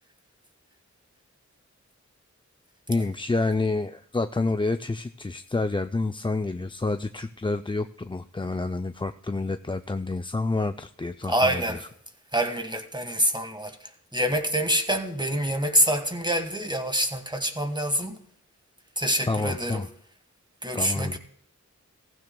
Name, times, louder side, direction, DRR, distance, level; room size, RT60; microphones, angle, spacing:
voice 1, 2.9-11.9 19.3-19.9 20.7-21.2, left 3 dB, 15° left, 0.4 m, -28 dB
voice 2, 11.3-11.8 12.3-13.7 14.1-18.2 19.0-19.8 20.6-21.2, equal, 15° right, 1.5 m, -26 dB
15.5 x 15.0 x 2.2 m
wide cardioid pair, 40°, 30 cm